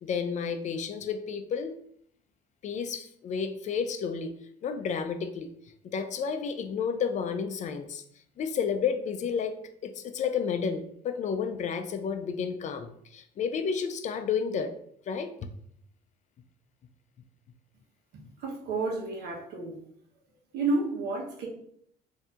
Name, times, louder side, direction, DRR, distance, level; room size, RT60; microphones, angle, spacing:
voice 1, 0.0-1.7 2.6-4.3 4.6-5.5 5.9-8.0 8.4-9.6 9.8-14.7 15.1-15.5, left 6 dB, 45° left, 9 dB, 0.4 m, -31 dB
voice 2, 18.4-19.8 20.5-21.5, right 3 dB, 80° right, 0 dB, 1.0 m, -30 dB
4.2 x 2.7 x 2.4 m, 0.66 s
cardioid pair, 110°, 17 cm